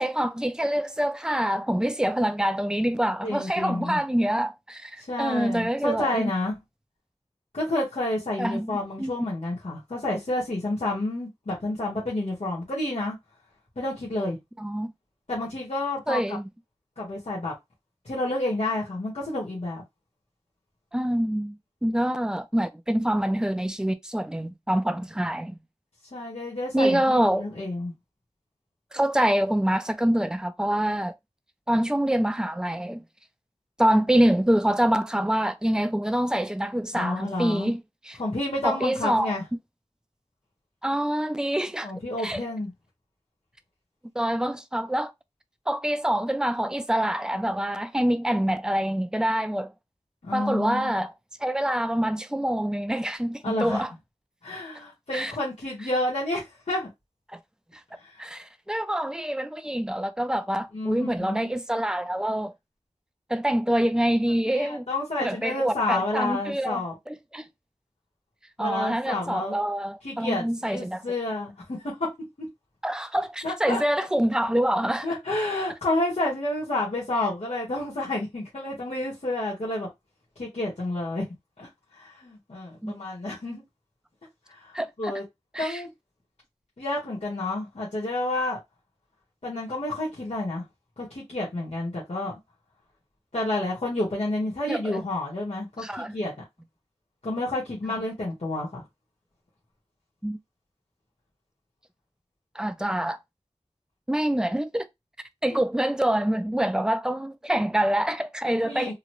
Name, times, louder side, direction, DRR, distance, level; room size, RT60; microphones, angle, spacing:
voice 1, 0.0-6.3 8.4-8.7 9.0-9.1 14.6-14.9 16.1-16.5 20.9-25.6 26.7-27.4 28.9-31.1 31.7-33.0 33.8-37.8 38.1-38.2 38.6-39.3 40.8-41.9 42.2-42.4 44.2-45.1 45.7-49.7 50.3-51.1 51.4-53.9 55.1-55.3 57.3-57.4 58.2-62.5 63.3-64.9 65.2-66.8 67.1-67.5 68.6-71.0 72.8-75.1 82.8-82.9 84.7-85.1 85.5-85.8 94.7-95.0 95.8-96.1 97.8-97.9 100.2-100.4 102.6-103.2 104.1-104.9 105.4-108.9, right 1 dB, 5° right, 0.5 m, -26 dB
voice 2, 3.2-4.0 5.1-6.6 7.5-13.1 13.8-14.4 15.3-16.2 17.0-17.5 18.0-19.8 26.1-27.9 36.9-37.7 38.2-39.4 41.8-42.7 50.2-50.9 53.4-53.8 54.4-56.9 58.0-58.1 60.7-61.5 64.4-66.9 68.6-69.6 70.0-72.1 73.1-73.8 75.0-79.9 80.4-81.2 81.6-81.7 81.9-83.6 84.5-85.2 85.6-85.9 86.8-88.6 89.4-90.6 91.0-92.3 93.3-96.3 97.2-98.8 105.5-105.6 108.4-108.9, left 2 dB, 85° left, 1.5 m, -30 dB
3.8 x 2.2 x 3.1 m
wide cardioid pair, 45°, 11 cm